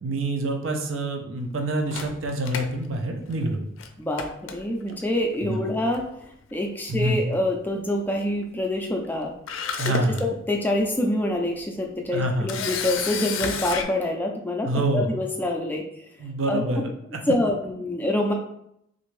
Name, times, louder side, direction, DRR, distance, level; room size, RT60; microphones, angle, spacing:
voice 1, 0.0-3.6 5.4-5.7 6.9-7.4 9.8-10.2 12.1-12.6 14.6-15.2 16.2-16.9, right 1 dB, 80° right, 3 dB, 0.6 m, -26 dB
Camera, 1.9-3.5 3.8-3.9 4.2-5.0 5.9-6.2 6.5-6.6 9.0-9.1 9.5-10.2 10.8-10.9 12.5-13.8, left 6 dB, 80° left, 0.4 m, -31 dB
voice 2, 4.0-6.1 6.5-9.3 9.8-15.8 16.5-16.6 17.3-18.3, left 1 dB, 10° left, 2 dB, 0.3 m, -26 dB
3.3 x 2.6 x 3.1 m, 0.76 s
head